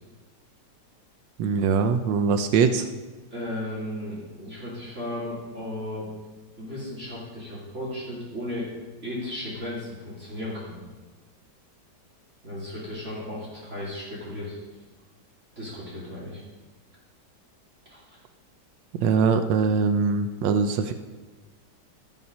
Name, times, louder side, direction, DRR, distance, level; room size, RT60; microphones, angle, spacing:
voice 1, 1.4-2.9 19.0-20.9, right 5 dB, 85° right, 8 dB, 1.3 m, -22 dB
voice 2, 3.3-6.1 6.6-8.7 9.0-10.8 12.4-14.6 15.6-16.4 17.9-18.0, left 1 dB, 40° right, -6 dB, 3.1 m, -35 dB
14.0 x 5.8 x 5.4 m, 1.2 s
omnidirectional pair, 1.9 m